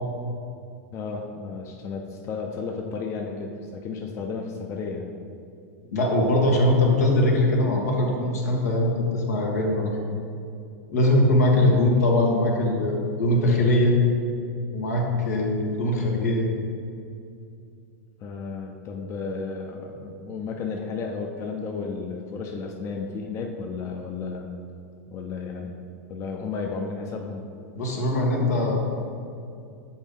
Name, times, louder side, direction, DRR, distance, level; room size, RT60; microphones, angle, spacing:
voice 1, 0.9-5.0 11.3-11.8 18.2-24.5 25.1-25.8 26.1-27.4, left 4 dB, 35° left, 2 dB, 0.6 m, -33 dB
voice 2, 5.9-9.9 10.9-13.9 14.7-16.5 27.7-28.7, left 1 dB, 85° left, -1 dB, 1.3 m, -21 dB
7.0 x 4.2 x 3.7 m, 2.5 s
hypercardioid pair, 115°, 8 cm